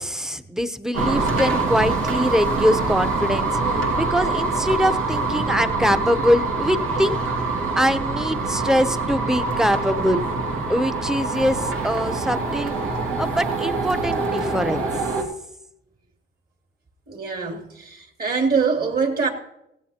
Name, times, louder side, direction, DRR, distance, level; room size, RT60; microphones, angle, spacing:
voice 1, 0.0-7.2 7.8-10.2 10.7-12.7 13.2-14.9, equal, 5° right, 0.8 m, -23 dB
sound 1, 0.9-15.2, right 3 dB, 90° right, 2.2 m, -24 dB
voice 2, 17.1-19.3, right 5 dB, 50° right, 2.8 m, -23 dB
17.5 x 16.0 x 2.9 m
cardioid pair, 90°, 20 cm